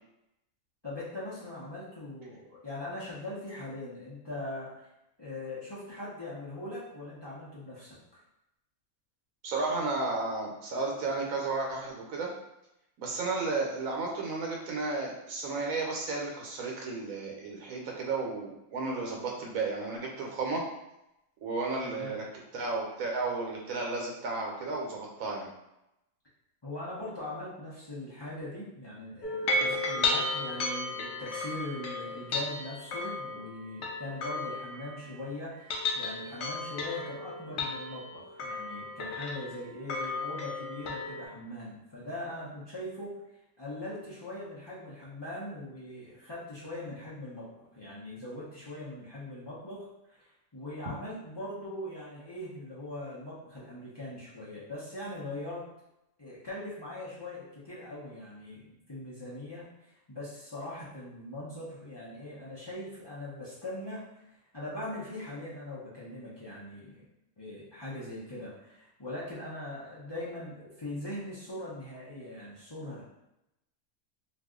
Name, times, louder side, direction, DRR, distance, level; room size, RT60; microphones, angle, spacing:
voice 1, 0.8-4.9 5.2-8.2 21.8-22.2 26.6-43.2 43.6-55.6 56.2-59.6 60.1-64.0 64.5-67.0 67.4-73.0, left 1 dB, 30° left, -8 dB, 0.5 m, -41 dB
voice 2, 9.4-12.3 13.0-20.6 21.4-22.2 22.5-25.5, right 3 dB, 75° right, -1 dB, 1.2 m, -33 dB
sound 1, 29.2-35.2 35.5-41.3, left 2 dB, 65° left, 0.7 m, -34 dB
2.6 x 2.4 x 3.6 m, 0.88 s
omnidirectional pair, 1.5 m